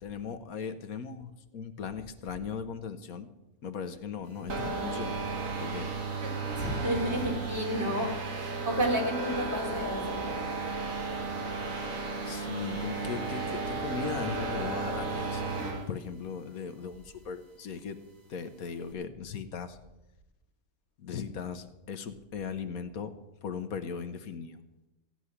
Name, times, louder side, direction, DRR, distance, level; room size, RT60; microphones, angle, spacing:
voice 1, 0.0-3.3 3.6-5.3 5.6-5.9 7.9-8.0 12.2-15.4 15.9-18.0 18.3-19.8 21.0-23.1 23.4-24.6, left 6 dB, 75° left, 9 dB, 1.3 m, -38 dB
sound 1, 4.5-15.9, right 3 dB, 60° right, 1.9 m, -34 dB
voice 2, 6.2-10.2, right 1 dB, 45° right, 0 dB, 3.3 m, -31 dB
15.5 x 6.2 x 9.7 m, 0.97 s
omnidirectional pair, 1.6 m